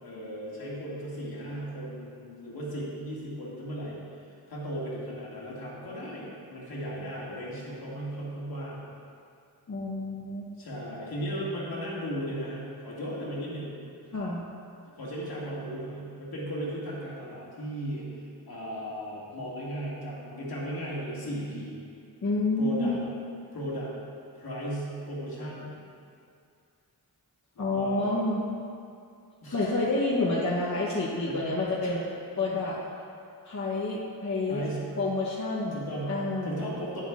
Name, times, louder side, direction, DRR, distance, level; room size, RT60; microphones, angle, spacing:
voice 1, 0.0-8.8 10.6-13.8 15.0-21.8 22.6-23.0 23.5-23.9 24.4-25.7 27.6-28.2 29.4-29.7 30.6-32.0 32.4-32.5 34.5-34.9 35.7-37.0, equal, 70° left, -6 dB, 1.9 m, -36 dB
voice 2, 9.7-10.5 14.1-14.4 22.2-23.0 27.6-28.4 29.5-32.0 32.4-32.8 33.4-34.6 35.0-35.8 36.1-36.7, left 2 dB, 50° left, -6 dB, 0.9 m, -28 dB
10.0 x 7.5 x 2.4 m, 2.4 s
wide cardioid pair, 150°, 38 cm